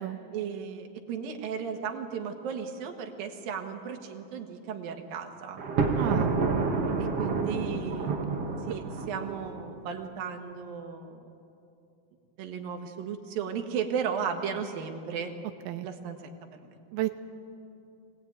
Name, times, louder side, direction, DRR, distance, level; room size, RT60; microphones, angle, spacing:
voice 1, 0.3-5.6 7.0-8.1 8.7-11.3 12.4-15.3 15.8-16.3, right 7 dB, 70° right, 4 dB, 3.2 m, -35 dB
Thunder, 5.6-9.7, right 4 dB, 45° right, 2.4 m, -29 dB
voice 2, 6.0-6.4 15.7-15.9 16.9-17.1, right 15 dB, 90° right, 8 dB, 2.7 m, -31 dB
24.0 x 18.5 x 9.2 m, 2.7 s
omnidirectional pair, 4.4 m